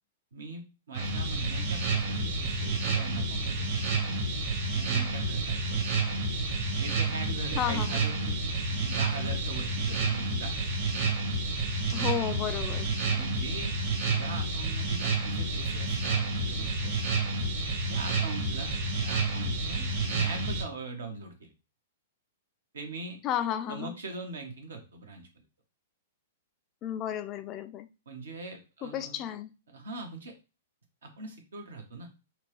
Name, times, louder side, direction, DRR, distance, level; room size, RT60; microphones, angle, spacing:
voice 1, 0.3-4.1 4.7-5.8 6.8-10.7 13.0-13.8 14.1-17.2 17.9-18.8 19.0-21.5 22.7-23.2 23.7-25.3 28.1-29.2 29.7-30.3 31.0-32.1, right 3 dB, 75° right, 1.1 m, -41 dB
sound 1, 0.9-20.6, right 3 dB, 50° right, 1.4 m, -29 dB
voice 2, 7.6-8.0 11.9-12.9 23.2-23.9 26.8-27.9 28.8-29.5, left 10 dB, 35° left, 0.4 m, -32 dB
4.3 x 2.3 x 3.1 m
hypercardioid pair, 110°, 0 cm